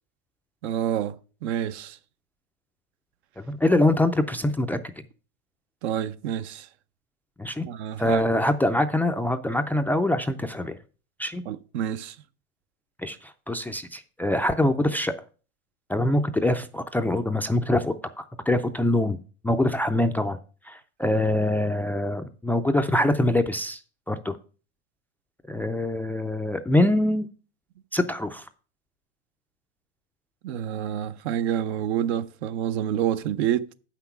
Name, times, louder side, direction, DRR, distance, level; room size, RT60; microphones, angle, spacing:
voice 1, 0.6-1.2 1.4-2.0 5.8-6.7 7.6-8.3 11.5-12.2 30.4-33.7, right 10 dB, 70° right, 0.7 m, -28 dB
voice 2, 3.5-4.8 7.4-7.7 8.0-10.7 11.2-11.4 13.0-13.2 13.5-15.1 15.9-19.2 19.4-20.4 20.7-23.8 24.1-24.3 25.5-27.3 27.9-28.4, left 1 dB, 5° left, 0.3 m, -24 dB
7.9 x 5.9 x 5.8 m
supercardioid pair, 115°, 34 cm